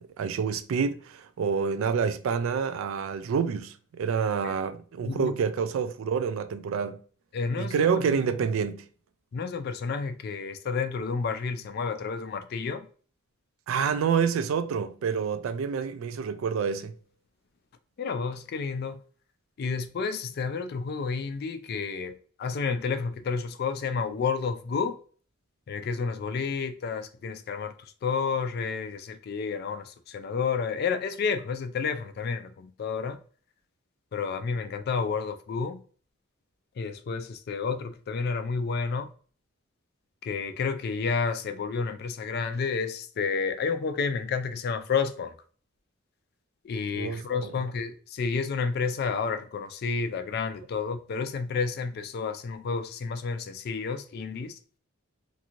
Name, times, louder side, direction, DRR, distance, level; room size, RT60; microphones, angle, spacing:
voice 1, 0.0-7.0 7.5-8.9 13.7-16.9 46.9-47.6, right 6 dB, 75° right, 0.3 m, -28 dB
voice 2, 7.3-7.9 9.3-12.8 18.0-18.9 19.6-22.1 22.4-25.0 25.7-27.7 28.0-29.8 30.1-32.5 32.8-33.2 34.1-35.8 36.8-39.1 40.3-45.3 46.7-54.5, left 5 dB, 50° left, 0.3 m, -30 dB
2.9 x 2.6 x 2.4 m
head